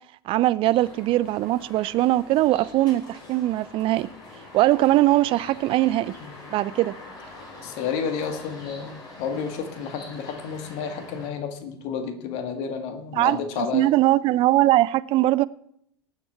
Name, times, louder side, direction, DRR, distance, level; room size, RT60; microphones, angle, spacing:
voice 1, 0.3-4.1 4.5-6.1 6.5-6.9 13.1-13.4 13.7-15.5, right 16 dB, 40° right, 0.5 m, -21 dB
sound 1, 0.7-11.3, left 2 dB, 30° left, 4.6 m, -44 dB
voice 2, 7.6-13.9, left 6 dB, 50° left, 1.9 m, -31 dB
18.5 x 7.2 x 4.5 m
figure-of-eight pair, 80°, 13 cm